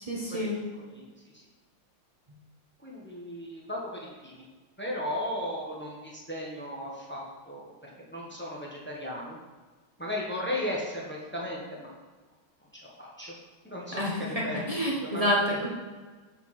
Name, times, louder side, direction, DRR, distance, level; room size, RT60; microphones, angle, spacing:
voice 1, 0.1-0.6 13.9-15.7, equal, 30° right, -4 dB, 0.7 m, -28 dB
voice 2, 2.8-4.4 4.8-9.4 10.0-11.9 13.0-13.3 13.6-14.7 15.0-15.6, left 1 dB, 5° left, -3 dB, 1.0 m, -36 dB
7.5 x 5.8 x 4.3 m, 1.3 s
omnidirectional pair, 2.3 m